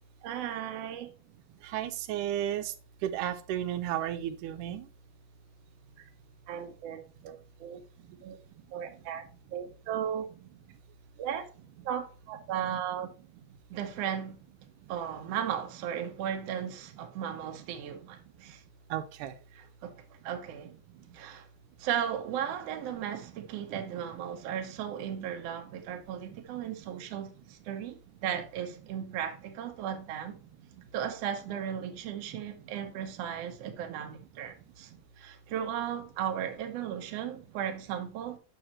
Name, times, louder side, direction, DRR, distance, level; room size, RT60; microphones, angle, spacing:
voice 1, 0.2-1.1 6.0-6.1 6.5-7.8 8.2-8.4 8.7-9.2 9.5-10.3 11.2-11.5 11.9-13.1 13.7-14.4 14.9-18.6 19.5-20.7 21.1-21.5 21.8-30.4 30.9-34.9 35.2-38.4, right 9 dB, 65° right, 1.7 m, -36 dB
voice 2, 1.6-2.7 3.0-4.9 18.9-19.3, right 11 dB, 90° right, 2.2 m, -33 dB
7.2 x 6.2 x 2.9 m
omnidirectional pair, 3.6 m